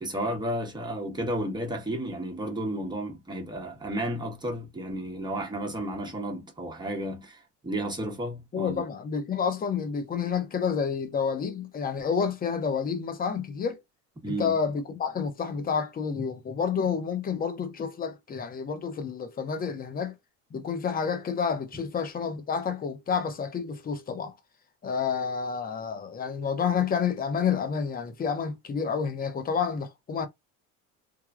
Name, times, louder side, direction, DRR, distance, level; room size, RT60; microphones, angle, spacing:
voice 1, 0.0-8.8 14.2-14.6, right 1 dB, 10° right, 1.1 m, -32 dB
voice 2, 8.5-13.8 14.3-20.1 20.5-24.3 24.8-30.3, left 6 dB, 25° left, 0.7 m, -29 dB
3.2 x 2.2 x 2.4 m
supercardioid pair, 115°, 37 cm